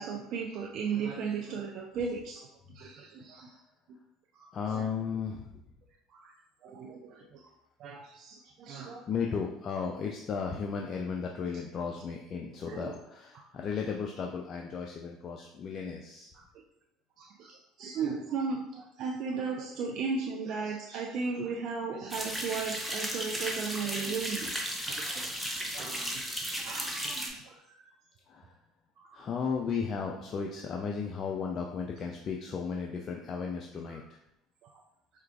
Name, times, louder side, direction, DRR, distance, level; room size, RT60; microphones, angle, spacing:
voice 1, 0.0-3.5 4.3-4.9 6.1-6.3 6.6-7.5 7.8-9.0 12.7-12.9 16.3-16.4 17.2-24.5 24.9-26.2 26.6-27.9 29.0-29.2 33.9-34.0 34.6-34.8, right 5 dB, 60° right, 0 dB, 0.4 m, -36 dB
voice 2, 4.5-5.5 9.1-16.3 28.3-28.5 29.1-34.0, left 6 dB, 45° left, 1 dB, 0.3 m, -35 dB
sound 1, 22.1-27.3, equal, ahead, 0.7 m, -35 dB
4.4 x 2.4 x 2.3 m, 0.83 s
hypercardioid pair, 70°, 0 cm